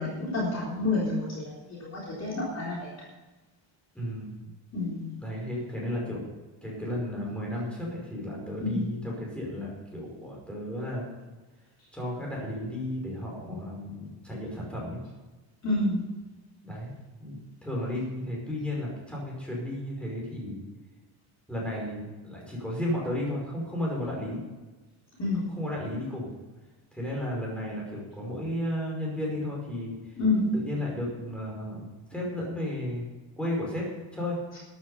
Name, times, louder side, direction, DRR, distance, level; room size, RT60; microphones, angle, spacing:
voice 1, 0.0-3.1 4.7-5.1 8.6-8.8 15.6-16.0 25.2-25.4 30.2-30.5, left 2 dB, 30° left, -5 dB, 4.0 m, -29 dB
voice 2, 3.9-4.4 5.1-11.0 11.9-15.0 16.6-16.9 17.2-20.6 21.5-24.4 25.5-26.3 26.9-30.1 30.5-33.1 33.4-34.4, left 1 dB, ahead, -3 dB, 5.4 m, -33 dB
13.0 x 11.5 x 5.7 m, 1.2 s
cardioid pair, 170°, 48 cm